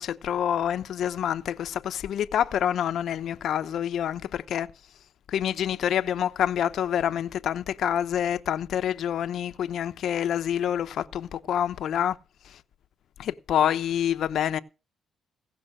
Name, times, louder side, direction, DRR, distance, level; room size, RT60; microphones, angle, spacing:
voice 1, 0.0-4.7 5.3-12.2 12.4-12.6 13.2-14.6, left 9 dB, 70° left, 0.8 m, -27 dB
16.5 x 5.6 x 7.7 m
cardioid pair, 90°, 0 cm